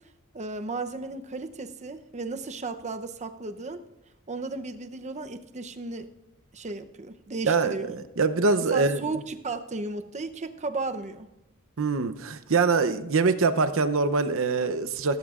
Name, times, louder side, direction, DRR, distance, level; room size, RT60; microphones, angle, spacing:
voice 1, 0.3-3.8 4.3-6.1 6.5-7.9 8.7-11.3, right 3 dB, 35° right, 8 dB, 0.7 m, -34 dB
voice 2, 7.4-9.0 11.8-15.2, right 4 dB, 65° right, 11 dB, 0.7 m, -24 dB
17.5 x 15.5 x 2.5 m, 0.94 s
head